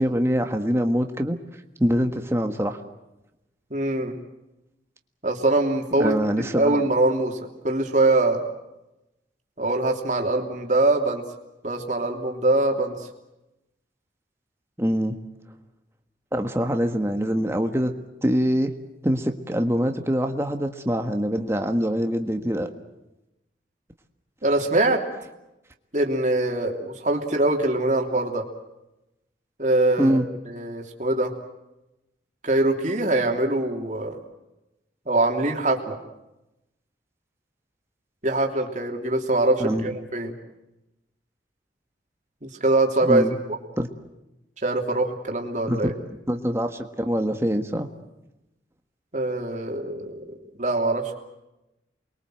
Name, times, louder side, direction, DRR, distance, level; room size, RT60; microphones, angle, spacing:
voice 1, 0.0-1.4 1.8-2.8 6.0-6.8 14.8-15.2 16.3-17.9 18.2-18.7 19.0-22.7 30.0-30.3 39.6-40.0 43.0-43.3 43.8-43.9 45.7-47.9, equal, 15° right, 5 dB, 1.6 m, -24 dB
voice 2, 3.7-4.2 5.2-6.1 6.5-8.4 9.6-11.2 11.6-12.9 24.4-25.0 25.9-28.5 29.6-30.2 30.4-31.3 32.4-34.2 35.1-36.0 38.2-40.3 42.4-43.3 44.6-45.9 49.1-50.2 50.6-51.1, right 2 dB, 40° right, 2 dB, 3.2 m, -23 dB
28.5 x 23.0 x 7.8 m, 0.94 s
head